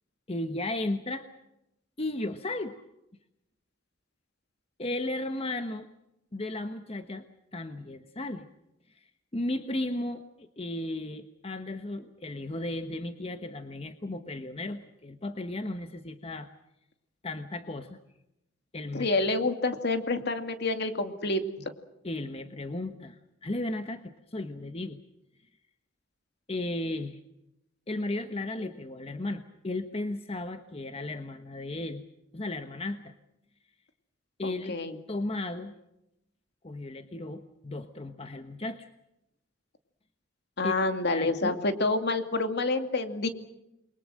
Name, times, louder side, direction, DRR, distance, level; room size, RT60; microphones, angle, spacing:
voice 1, 0.3-1.3 2.0-2.8 4.8-5.9 6.3-7.2 7.5-8.5 9.3-16.5 17.2-18.0 18.7-19.1 22.0-25.0 26.5-27.2 27.9-32.0 32.3-33.1 34.4-34.8 35.1-35.7 36.6-38.9 40.6-40.8 41.1-41.6, left 2 dB, 30° left, 8 dB, 1.1 m, -35 dB
voice 2, 18.9-21.7 34.4-34.9 40.6-43.3, left 2 dB, 60° left, 7 dB, 2.5 m, -28 dB
29.0 x 23.0 x 6.4 m, 0.87 s
head